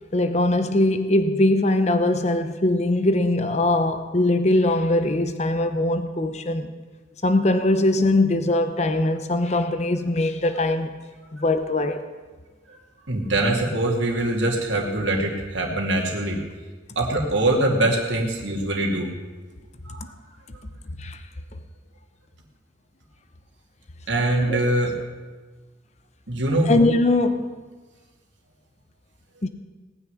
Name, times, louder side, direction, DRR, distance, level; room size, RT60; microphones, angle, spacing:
voice 1, 0.1-6.7 7.2-10.9 11.3-12.0 20.0-20.1 21.0-21.2 24.4-24.6 26.7-27.6 29.4-29.5, left 2 dB, 35° left, 0.8 m, -21 dB
voice 2, 13.1-16.4 17.0-19.1 19.8-20.1 24.1-25.0 26.3-26.7, right 1 dB, 80° right, 2.5 m, -23 dB
18.5 x 6.5 x 9.9 m
head